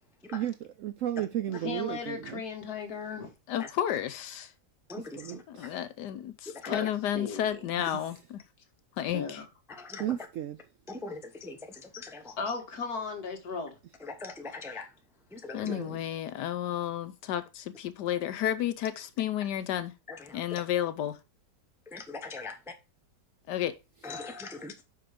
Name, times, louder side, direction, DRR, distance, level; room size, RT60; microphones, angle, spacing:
voice 1, 0.3-2.4 5.0-5.4 7.8-8.0 10.0-10.6 15.6-16.0, right 12 dB, 75° right, 0.7 m, -34 dB
voice 2, 1.6-3.3 6.7-6.9 7.1-7.6 9.1-9.5 12.4-13.8 14.5-14.8, left 4 dB, 60° left, 2.0 m, -36 dB
voice 3, 3.5-4.5 5.6-8.4 9.0-9.4 15.5-19.9 20.3-21.2 23.5-23.7, left 11 dB, 80° left, 1.3 m, -32 dB
voice 4, 6.5-6.9 9.8-10.2 10.9-12.4 14.0-14.9 15.3-15.8 20.1-20.4 21.9-22.6 24.0-24.7, left 3 dB, ahead, 0.6 m, -41 dB
5.8 x 5.4 x 5.0 m
omnidirectional pair, 1.8 m